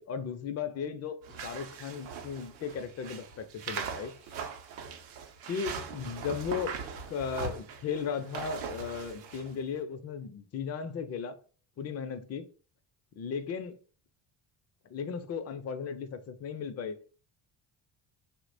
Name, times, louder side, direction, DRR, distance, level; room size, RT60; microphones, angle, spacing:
voice 1, 0.0-4.1 5.5-6.8 7.1-11.4 11.8-12.5 13.2-13.8 14.9-17.0, left 6 dB, 35° left, 0.5 m, -36 dB
sound 1, 1.2-9.5, right 5 dB, 75° right, 0.7 m, -40 dB
2.8 x 2.2 x 2.5 m
supercardioid pair, 65°, 48 cm